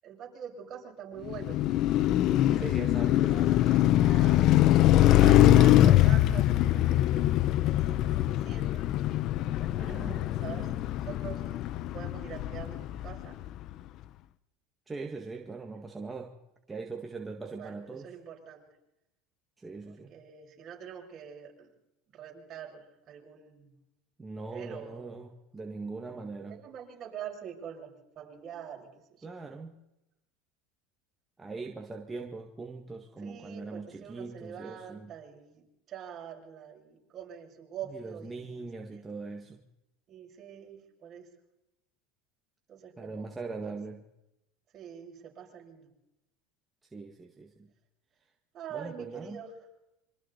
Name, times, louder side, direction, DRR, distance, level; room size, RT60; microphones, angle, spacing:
voice 1, 0.0-1.6 2.0-2.7 3.3-4.4 5.1-8.8 9.5-11.4 11.9-13.4 17.6-17.8 18.0-18.6 19.9-21.7 22.1-23.8 24.5-25.1 26.5-28.9 29.2-29.3 33.2-38.7 38.9-39.0 40.1-41.3 42.7-43.3 43.6-43.7 44.7-45.9 48.5-49.5, right 8 dB, 40° right, 0 dB, 7.0 m, -45 dB
Car passing by, 1.2-13.5, left 14 dB, 55° left, 0.9 m, -23 dB
voice 2, 2.5-3.7 5.1-5.9 9.8-10.7 14.9-16.4 16.7-18.1 19.6-20.1 24.2-26.6 29.2-29.8 31.4-35.1 37.9-39.6 43.0-44.0 46.9-47.7 48.7-49.4, right 3 dB, 15° right, 2 dB, 2.0 m, -41 dB
27.0 x 25.0 x 4.2 m, 0.91 s
supercardioid pair, 105°, 0 cm